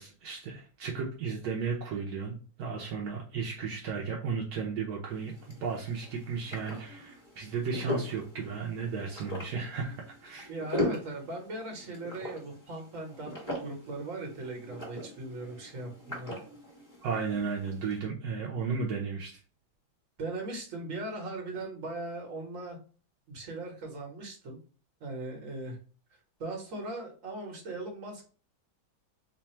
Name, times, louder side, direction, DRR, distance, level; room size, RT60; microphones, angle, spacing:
voice 1, 0.0-5.3 5.6-10.0 10.2-10.5 17.0-19.3, right 5 dB, 70° right, -1 dB, 0.9 m, -34 dB
sound 1, 5.1-18.0, left 1 dB, 10° left, 1.2 m, -40 dB
voice 2, 10.5-16.4 20.2-22.8 23.3-24.6 25.0-25.8 26.4-28.2, right 2 dB, 45° right, 1 dB, 1.3 m, -39 dB
3.3 x 2.2 x 4.2 m, 0.39 s
omnidirectional pair, 2.2 m